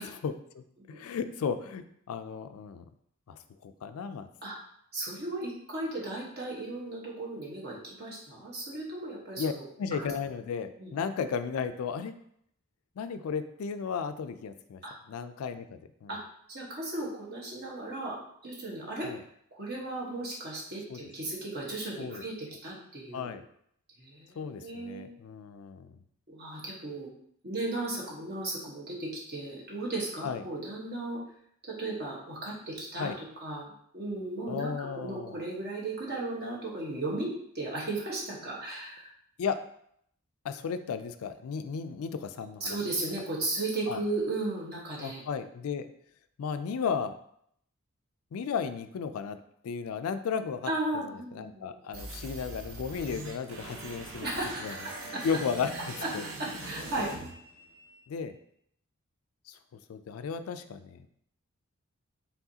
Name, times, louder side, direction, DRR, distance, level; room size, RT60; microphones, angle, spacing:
voice 1, 0.0-2.8 3.3-4.3 9.4-9.5 9.8-12.1 13.0-14.8 15.1-16.1 19.0-19.2 20.9-21.1 21.9-22.2 23.1-23.4 24.4-26.0 30.2-30.4 33.0-33.2 34.5-35.4 39.4-39.6 40.4-42.8 43.9-44.0 45.0-45.9 46.4-47.1 48.3-49.4 49.6-50.7 51.1-54.3 54.6-54.8 55.0-55.7 56.1-56.3 57.0-57.1 58.1-58.4 59.5-59.6 59.9-61.1, left 6 dB, 75° left, 10 dB, 0.3 m, -34 dB
voice 2, 4.9-9.6 9.9-10.0 10.8-10.9 14.8-14.9 16.1-16.2 16.5-18.2 18.4-19.1 19.6-23.3 24.0-25.1 26.3-27.1 27.4-31.2 31.6-33.7 33.9-37.3 37.5-39.1 42.6-45.2 50.7-51.7 54.2-54.8 55.1-55.2 56.0-56.1 56.4-57.1, right 2 dB, 50° right, -3 dB, 1.3 m, -35 dB
sound 1, 51.9-58.0, right 2 dB, 65° right, 0.7 m, -42 dB
4.6 x 3.6 x 2.8 m, 0.69 s
head